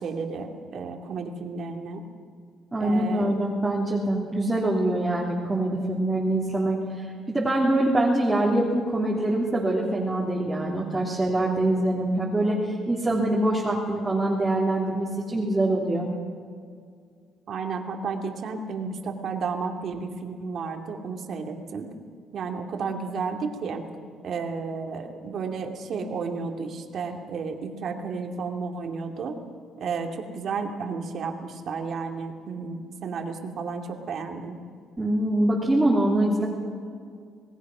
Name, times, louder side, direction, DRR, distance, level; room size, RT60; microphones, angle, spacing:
voice 1, 0.0-2.0 2.8-3.3 17.5-21.9 22.3-23.8 24.2-29.4 29.8-34.6, right 5 dB, 50° right, 4 dB, 2.6 m, -32 dB
voice 2, 2.7-16.1 35.0-36.5, right 1 dB, 10° right, -4 dB, 3.1 m, -24 dB
27.0 x 19.0 x 6.2 m, 2.2 s
cardioid pair, 135°, 0 cm